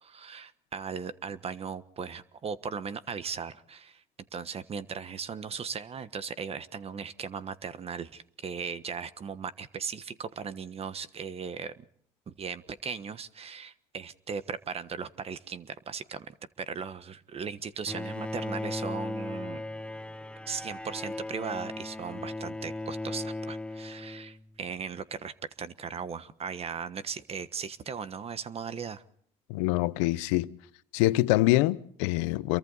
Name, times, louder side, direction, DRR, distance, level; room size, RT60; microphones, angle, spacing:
voice 1, 0.0-4.0 4.3-11.8 12.3-19.6 20.5-29.0, right 6 dB, 40° right, 1.3 m, -38 dB
Bowed string instrument, 17.9-24.6, left 2 dB, 5° left, 0.8 m, -37 dB
voice 2, 29.5-30.5 30.9-32.6, left 18 dB, 90° left, 0.8 m, -25 dB
29.0 x 23.0 x 4.1 m
supercardioid pair, 75°, 15 cm